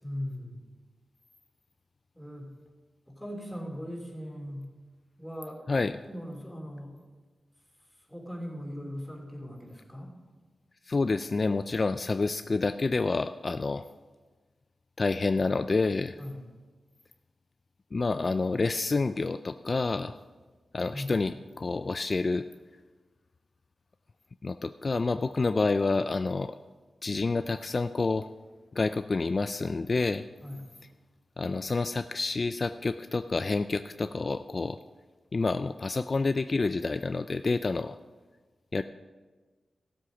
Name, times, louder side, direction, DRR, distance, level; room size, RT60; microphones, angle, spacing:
voice 1, 0.0-0.6 2.1-2.5 3.1-4.7 5.2-5.6 6.0-6.9 8.1-10.1 16.2-16.5 20.9-21.1 30.4-30.6, equal, ahead, 0 dB, 3.0 m, -39 dB
voice 2, 10.9-13.8 15.0-16.2 17.9-20.2 20.7-22.5 24.4-26.5 27.0-28.3 28.7-30.2 31.4-34.8 35.3-38.0 38.7-38.8, left 3 dB, 45° left, 10 dB, 0.3 m, -28 dB
14.5 x 7.7 x 5.0 m, 1.3 s
wide cardioid pair, 80°, 0 cm